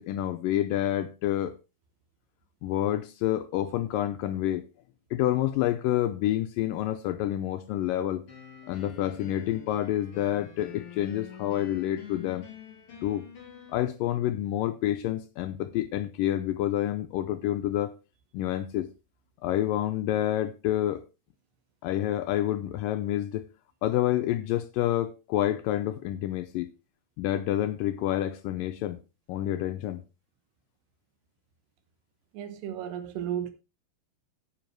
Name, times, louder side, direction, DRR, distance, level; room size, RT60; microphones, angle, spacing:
voice 1, 0.0-1.6 2.6-4.6 5.1-8.2 8.7-12.5 13.0-13.3 13.7-17.9 18.3-18.9 19.4-21.0 21.8-23.4 23.8-26.7 27.2-29.0 29.3-30.0, left 13 dB, 85° left, 1.9 m, -28 dB
sound 1, 8.3-13.8, left 7 dB, 35° left, 3.6 m, -46 dB
voice 2, 32.3-33.5, right 10 dB, 80° right, 3.3 m, -34 dB
9.3 x 8.7 x 4.5 m
omnidirectional pair, 4.7 m